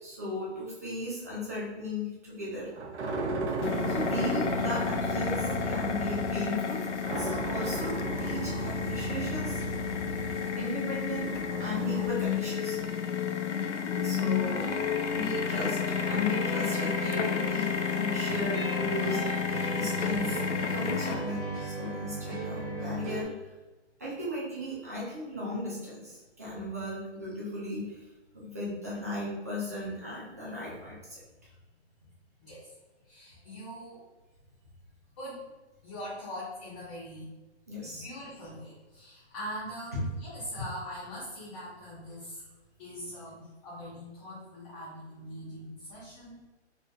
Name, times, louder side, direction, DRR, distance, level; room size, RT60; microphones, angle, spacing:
voice 1, 0.0-2.7 3.6-6.8 7.2-9.9 10.6-11.3 11.6-12.8 14.0-14.7 15.1-19.2 19.7-23.3 24.0-28.0 28.3-31.2 37.7-38.0 39.9-40.1, left 1 dB, 15° right, -7 dB, 0.4 m, -36 dB
sound 1, 2.6-12.1, right 3 dB, 75° right, 0.7 m, -35 dB
sound 2, 3.6-21.1, left 7 dB, 85° left, 0.6 m, -31 dB
sound 3, 15.9-23.2, right 3 dB, 35° right, 1.0 m, -38 dB
voice 2, 32.4-32.7 33.0-34.0 35.2-35.5 35.8-37.3 37.8-42.4 42.8-46.4, equal, 25° left, -13 dB, 1.3 m, -42 dB
4.3 x 3.1 x 2.3 m, 1.1 s
hypercardioid pair, 160°, 34 cm